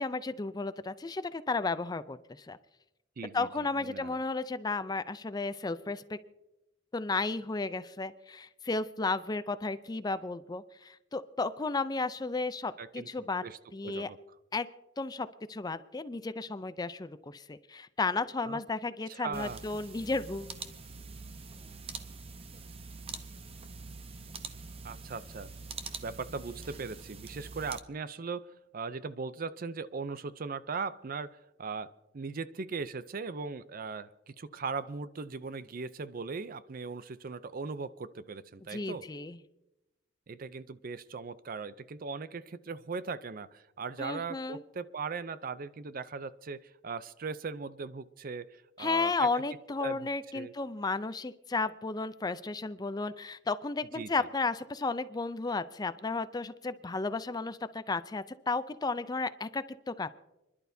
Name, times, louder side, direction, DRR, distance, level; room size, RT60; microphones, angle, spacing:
voice 1, 0.0-2.6 3.3-6.2 6.9-13.4 13.7-14.1 14.5-14.7 15.0-20.5 38.7-39.4 44.0-44.6 48.8-60.1, left 3 dB, 20° left, 13 dB, 0.4 m, -33 dB
voice 2, 3.2-4.2 12.8-13.1 13.4-13.6 13.8-14.2 18.4-18.6 19.1-19.6 24.8-25.5 26.0-28.5 28.7-39.1 40.3-49.3 49.8-50.1 50.3-50.5 54.0-54.3, right 4 dB, 50° right, 15 dB, 0.5 m, -39 dB
sound 1, 19.3-27.8, right 4 dB, 30° right, 0.9 m, -44 dB
29.5 x 11.5 x 2.7 m, 0.95 s
head